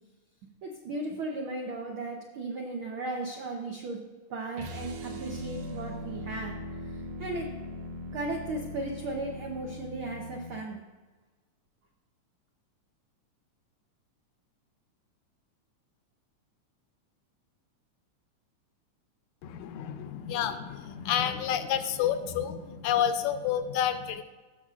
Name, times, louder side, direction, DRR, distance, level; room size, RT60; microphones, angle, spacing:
voice 1, 0.6-4.0 4.3-6.6 7.2-7.5 8.1-10.8, right 2 dB, 85° right, 1 dB, 1.1 m, -36 dB
sound 1, 4.5-10.7, left 1 dB, 70° right, 1.8 m, -40 dB
voice 2, 19.6-22.6 22.8-24.2, left 9 dB, 80° left, 9 dB, 1.9 m, -29 dB
16.5 x 6.6 x 2.4 m, 1.3 s
omnidirectional pair, 3.5 m